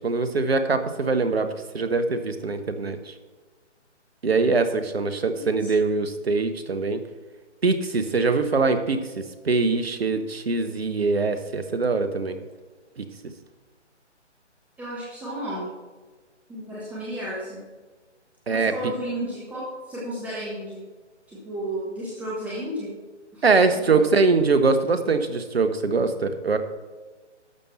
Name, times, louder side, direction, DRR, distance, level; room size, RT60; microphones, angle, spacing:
voice 1, 0.0-1.5 1.7-3.1 4.2-7.0 7.6-12.4 13.0-13.1 18.5-18.7 23.4-26.6, right 4 dB, 55° right, 9 dB, 1.3 m, -23 dB
voice 2, 5.3-5.7 14.8-15.7 16.5-17.6 18.5-20.8 21.3-22.9 23.3-23.5 23.7-24.0, right 1 dB, 5° right, -8 dB, 1.3 m, -33 dB
12.0 x 7.1 x 4.4 m, 1.3 s
figure-of-eight pair, 145°, 36 cm